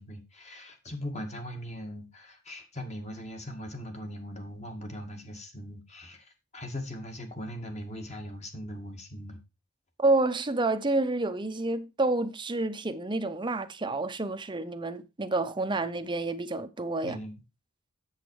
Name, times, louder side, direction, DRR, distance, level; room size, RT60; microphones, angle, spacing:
voice 1, 0.0-9.4 17.0-17.3, equal, 35° left, 2.0 m, -40 dB
voice 2, 10.0-17.2, right 2 dB, 25° right, 0.8 m, -29 dB
8.3 x 7.4 x 4.7 m
head